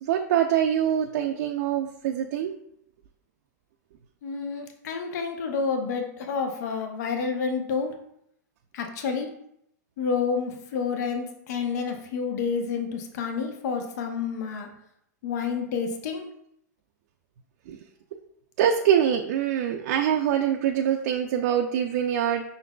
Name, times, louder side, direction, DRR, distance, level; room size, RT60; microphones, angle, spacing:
voice 1, 0.0-2.5 17.7-17.8 18.6-22.4, right 9 dB, 60° right, 3 dB, 0.4 m, -24 dB
voice 2, 4.2-7.9 8.7-9.3 10.0-14.7 15.2-16.2, left 5 dB, 65° left, 4 dB, 0.8 m, -29 dB
5.7 x 3.8 x 2.3 m, 0.75 s
hypercardioid pair, 125°, 10 cm